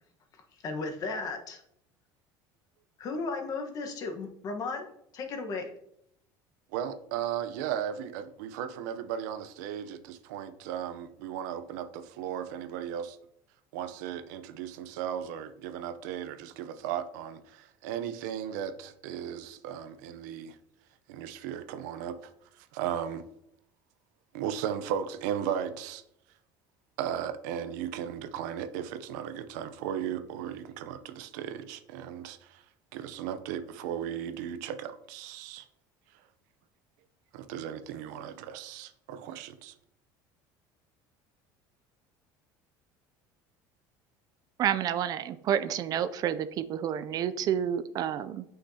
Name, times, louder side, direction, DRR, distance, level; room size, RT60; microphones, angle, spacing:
voice 1, 0.6-1.6 3.0-4.9 5.1-5.7, left 3 dB, 40° left, 4 dB, 1.2 m, -35 dB
voice 2, 6.7-13.2 13.7-20.6 21.1-22.3 22.6-23.2 24.3-26.0 27.0-32.6 32.9-35.7 37.3-39.7, right 9 dB, 90° right, 11 dB, 0.6 m, -36 dB
voice 3, 44.6-48.4, right 9 dB, 45° right, 13 dB, 0.4 m, -29 dB
8.4 x 5.8 x 2.8 m, 0.75 s
cardioid pair, 140°, 9 cm